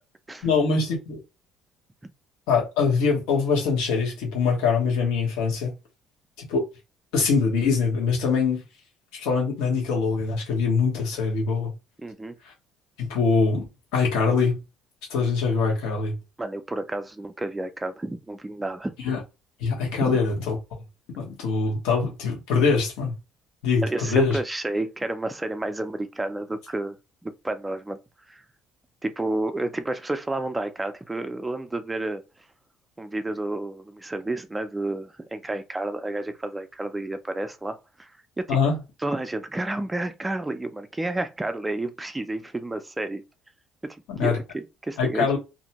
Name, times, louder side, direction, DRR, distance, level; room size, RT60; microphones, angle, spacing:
voice 1, 0.4-1.2 2.5-5.7 6.4-6.7 7.1-8.6 9.1-11.7 12.4-12.5 13.0-13.6 13.9-14.6 15.1-16.1 19.0-19.2 19.6-20.6 21.2-23.1 23.6-24.4 38.5-38.8 44.1-44.4 45.0-45.4, left 4 dB, 85° left, 1.0 m, -23 dB
voice 2, 12.0-12.4 16.4-19.0 20.0-20.2 23.8-27.0 27.2-28.0 28.3-28.4 29.0-32.2 33.0-38.6 39.0-43.2 43.8-45.3, right 2 dB, 10° right, 0.3 m, -31 dB
2.5 x 2.1 x 2.8 m
cardioid pair, 105°, 0 cm